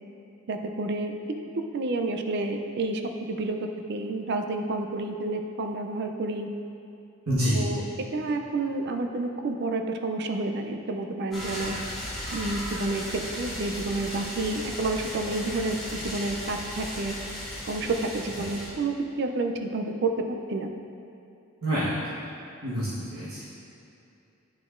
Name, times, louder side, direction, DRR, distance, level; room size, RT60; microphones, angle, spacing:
voice 1, 0.5-1.1 1.7-6.5 7.5-7.8 8.1-11.8 12.3-13.0 13.4-15.8 16.0-17.1 17.7-17.9 18.1-20.7, right 2 dB, 50° right, 5 dB, 0.4 m, -30 dB
voice 2, 7.3-7.7 18.4-18.5 21.6-21.9 22.6-23.4, equal, 70° right, -12 dB, 1.3 m, -27 dB
sound 1, 11.3-18.7, equal, ahead, 1.3 m, -36 dB
9.1 x 4.9 x 2.5 m, 2.7 s
head